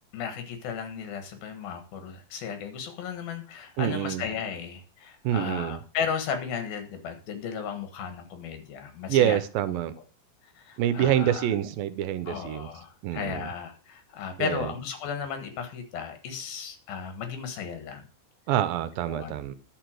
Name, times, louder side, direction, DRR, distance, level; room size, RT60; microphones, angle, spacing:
voice 1, 0.1-9.4 9.7-10.0 10.6-11.6 12.2-18.0 19.1-19.4, left 7 dB, 80° left, 3.4 m, -35 dB
voice 2, 3.8-4.2 5.2-5.8 9.1-9.9 10.8-12.7 13.0-13.5 14.4-14.7 18.5-19.5, right 11 dB, 80° right, 2.4 m, -26 dB
11.0 x 5.0 x 7.6 m
omnidirectional pair, 4.3 m